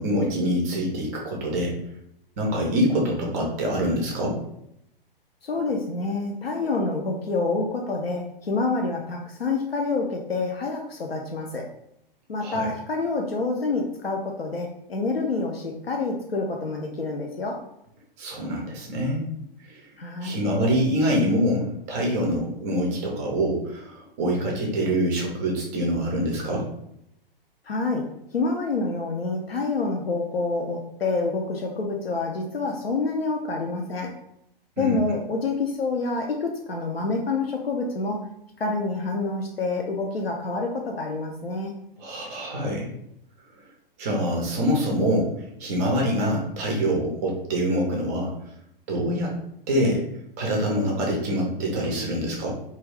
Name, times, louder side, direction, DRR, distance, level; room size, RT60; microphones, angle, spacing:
voice 1, 0.0-1.8 2.4-4.4 12.4-12.7 18.2-19.2 19.7-19.8 20.2-26.7 34.8-35.0 42.0-42.9 44.0-48.3 48.9-49.3 49.7-50.0 50.4-52.5, equal, 20° right, -1 dB, 0.4 m, -25 dB
voice 2, 5.4-11.7 12.3-17.6 20.0-20.4 27.7-34.1 34.8-38.2 38.6-41.7, left 3 dB, 85° left, 1 dB, 0.5 m, -27 dB
2.3 x 2.3 x 3.3 m, 0.76 s
figure-of-eight pair, 115°, 29 cm